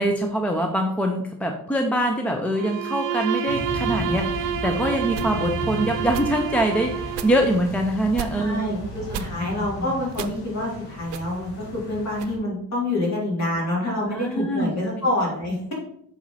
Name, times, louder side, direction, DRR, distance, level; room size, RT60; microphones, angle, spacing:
voice 1, 0.0-8.9 9.8-9.9 14.1-14.7, right 1 dB, 5° left, 3 dB, 0.4 m, -24 dB
Bowed string instrument, 2.5-7.4, right 8 dB, 50° right, 0.7 m, -29 dB
sound 1, 3.5-12.3, left 1 dB, 65° left, 2.0 m, -35 dB
sound 2, 5.1-5.3 6.1-6.3 7.1-7.3 8.1-8.3 9.1-9.3 10.1-10.4 11.1-11.2 12.1-12.3, right 10 dB, 90° right, 0.7 m, -34 dB
voice 2, 8.3-15.7, left 1 dB, 40° left, -4 dB, 3.4 m, -27 dB
7.5 x 4.2 x 5.5 m, 0.70 s
cardioid pair, 180°, 40 cm